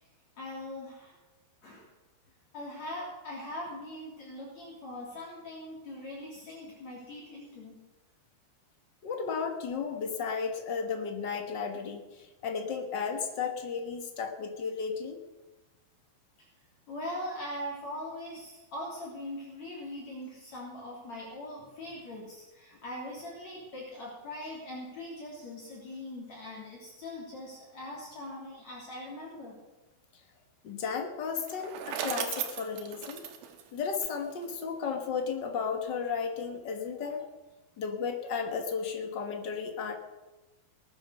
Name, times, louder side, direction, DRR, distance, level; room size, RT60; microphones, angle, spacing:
voice 1, 0.4-1.2 1.6-1.9 2.5-7.8 16.9-29.6, left 1 dB, 45° left, -4 dB, 4.3 m, -41 dB
voice 2, 9.0-15.2 30.6-33.2 33.7-37.3 37.8-40.0, left 6 dB, 75° left, 4 dB, 1.0 m, -34 dB
Bicycle, 31.3-34.5, right 9 dB, 80° right, 3.2 m, -37 dB
19.5 x 9.9 x 6.4 m, 1.1 s
omnidirectional pair, 4.4 m